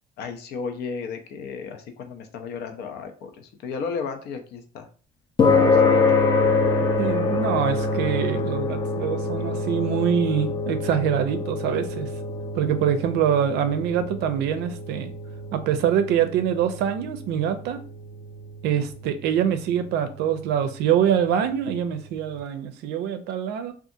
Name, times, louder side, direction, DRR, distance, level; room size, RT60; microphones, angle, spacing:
voice 1, 0.2-4.9 5.6-6.2 18.8-18.9, left 5 dB, 75° left, 0.5 m, -34 dB
sound 1, 5.4-21.9, left 4 dB, 25° left, 0.4 m, -26 dB
voice 2, 7.0-12.1 12.5-15.1 15.5-17.8 18.6-23.7, right 9 dB, 85° right, 0.4 m, -24 dB
2.7 x 2.4 x 2.5 m
cardioid pair, 110°, 17 cm